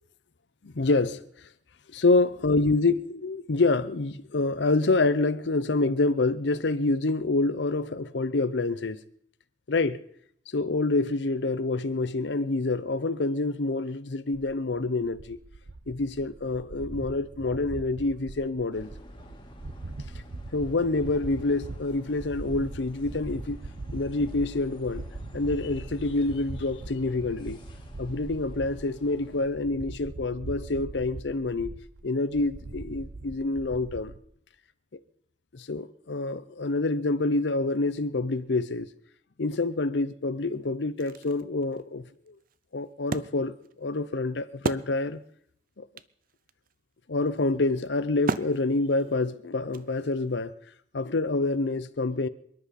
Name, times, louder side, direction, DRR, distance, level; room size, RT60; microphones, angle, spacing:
voice 1, 0.6-1.2 1.9-9.0 9.7-10.0 10.5-15.4 15.9-18.9 20.5-23.6 23.9-25.0 25.3-27.6 28.0-31.7 32.0-34.1 35.5-38.9 39.4-42.3 42.7-45.2 45.8-45.9 47.1-50.5 50.9-52.3, left 3 dB, 75° left, 0.7 m, -27 dB
sound 1, 14.3-34.2, right 2 dB, 85° right, 0.9 m, -41 dB
sound 2, 18.7-29.5, left 1 dB, 25° left, 2.1 m, -49 dB
Wood, 40.2-40.3 40.7-45.4 45.7-45.8 46.0-50.3, right 3 dB, 50° right, 0.6 m, -37 dB
28.0 x 10.5 x 4.2 m
head